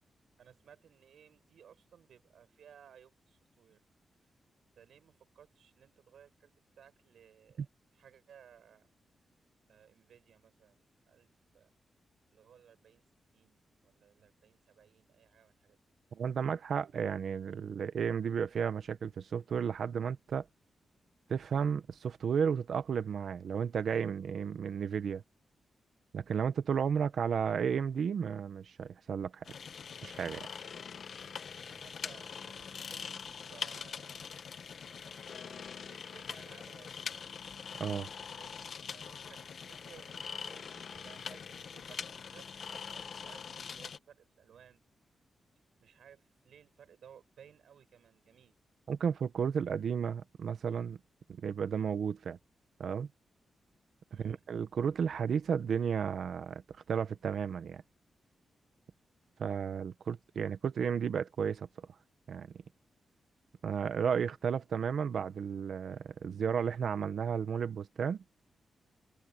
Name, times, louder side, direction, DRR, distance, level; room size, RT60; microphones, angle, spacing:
voice 1, 0.4-3.8 4.8-7.7 7.9-8.9 9.7-11.3 11.5-11.7 12.3-13.0 13.3-15.8 31.6-34.3 35.0-37.3 38.2-44.8 45.8-48.5 54.1-54.4, right 8 dB, 80° right, 7.8 m, -60 dB
voice 2, 16.1-20.4 21.3-25.2 26.1-29.4 30.0-30.5 37.8-38.1 48.9-51.0 51.4-52.4 52.8-53.1 54.2-56.6 56.9-57.8 59.4-61.7 62.3-62.5 63.6-68.2, right 7 dB, 60° right, 1.1 m, -33 dB
sound 1, 29.4-44.0, left 6 dB, 55° left, 1.5 m, -43 dB
wide cardioid pair, 170°, 0 cm